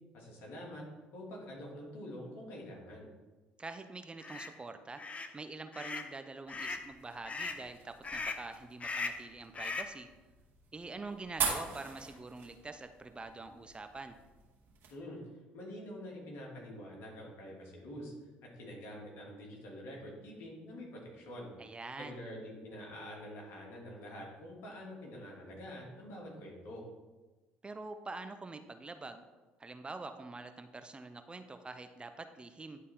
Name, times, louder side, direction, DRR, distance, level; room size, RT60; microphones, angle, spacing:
voice 1, 0.1-0.8 1.1-3.1 14.9-15.2 15.5-18.1 18.4-21.5 22.0-26.8, left 1 dB, 65° left, -2 dB, 2.4 m, -46 dB
voice 2, 3.6-5.0 5.3-10.1 10.7-14.2 21.6-22.2 27.6-29.3 29.6-32.8, right 3 dB, 25° right, 8 dB, 0.6 m, -45 dB
sound 1, 4.2-4.5 5.0-5.3 5.7-6.1 6.5-6.9 7.2-7.6 8.0-8.5 8.8-9.3 9.5-10.0, left 4 dB, 30° left, 0.7 m, -39 dB
sound 2, 6.5-14.9, right 6 dB, 60° right, 2.4 m, -43 dB
11.0 x 4.2 x 3.6 m, 1.2 s
hypercardioid pair, 60°, 4 cm